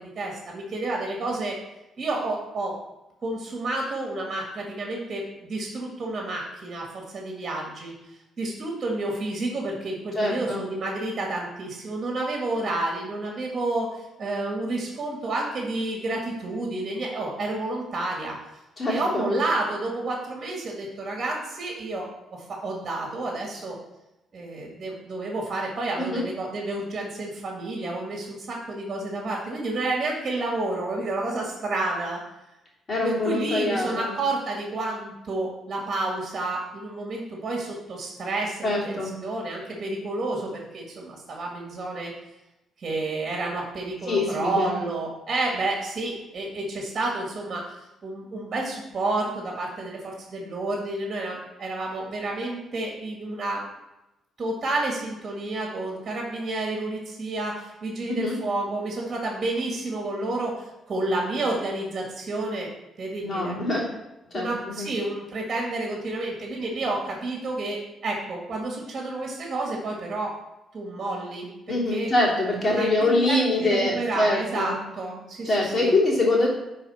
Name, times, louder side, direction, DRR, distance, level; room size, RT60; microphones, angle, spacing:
voice 1, 0.0-1.6 2.0-2.8 3.2-7.9 8.4-18.4 18.9-23.8 24.3-32.2 33.0-42.1 42.8-47.6 48.0-53.6 54.4-62.7 63.0-63.6 64.3-70.3 70.7-72.1 72.6-76.0, right 2 dB, 40° right, -1 dB, 1.9 m, -30 dB
voice 2, 10.1-10.6 18.8-19.3 26.0-26.2 32.9-34.1 38.6-39.1 44.0-44.7 58.1-58.4 63.2-63.9 64.3-64.9 71.7-74.7 75.4-76.5, left 2 dB, 35° left, -4 dB, 3.0 m, -24 dB
10.0 x 4.2 x 4.3 m, 0.97 s
cardioid pair, 90°, 0 cm